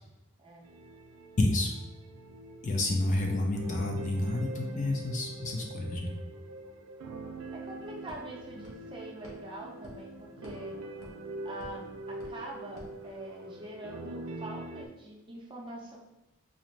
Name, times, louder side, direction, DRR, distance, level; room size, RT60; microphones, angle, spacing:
sound 1, 0.6-14.9, right 2 dB, 75° right, 0.4 m, -44 dB
voice 1, 1.4-1.7 2.6-6.1, left 2 dB, 35° left, 0 dB, 0.5 m, -29 dB
sound 2, 7.3-13.7, equal, 70° left, 1.1 m, -54 dB
voice 2, 7.5-10.8 11.4-16.0, right 1 dB, 25° right, -2 dB, 0.6 m, -44 dB
4.0 x 2.5 x 3.1 m, 0.93 s
head